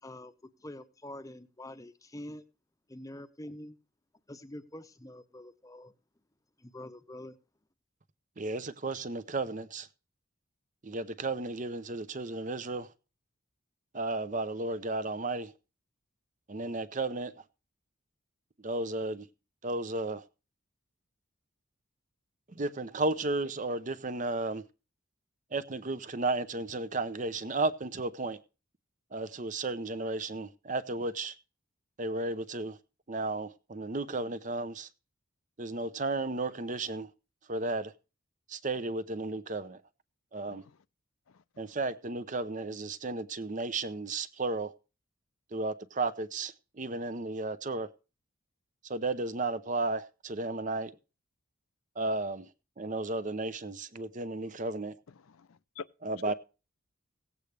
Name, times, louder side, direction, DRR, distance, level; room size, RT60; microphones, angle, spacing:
voice 1, 0.0-2.4 2.9-3.8 4.3-5.9 6.6-7.4, left 1 dB, 15° left, 0.7 m, -46 dB
voice 2, 8.4-9.9 10.8-12.9 13.9-15.5 16.5-17.3 18.6-19.3 19.6-20.2 22.5-24.6 25.5-28.4 29.1-31.3 32.0-32.8 33.1-34.9 35.6-37.1 37.5-37.9 38.5-39.8 40.3-40.6 41.6-44.7 45.5-47.9 48.9-50.9 52.0-52.5 52.8-54.9 56.0-56.3, right 2 dB, 35° right, 0.7 m, -33 dB
voice 3, 55.1-55.9 56.3-56.4, left 5 dB, 80° left, 0.5 m, -45 dB
17.0 x 8.2 x 3.3 m
head